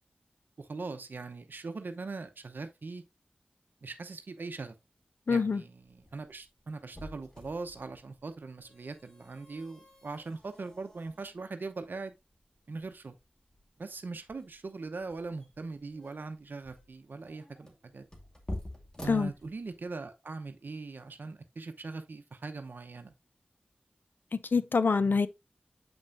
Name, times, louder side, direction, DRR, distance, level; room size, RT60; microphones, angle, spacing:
voice 1, 0.6-3.0 3.8-4.8 5.3-12.1 12.7-13.2 13.8-18.1 19.0-23.1, right 3 dB, 75° right, 0.8 m, -41 dB
voice 2, 5.3-5.6 19.1-19.3 24.5-25.3, left 4 dB, 75° left, 0.5 m, -25 dB
sound 1, 5.8-20.0, left 1 dB, 20° left, 2.1 m, -49 dB
7.8 x 5.4 x 2.5 m
wide cardioid pair, 45°, 3 cm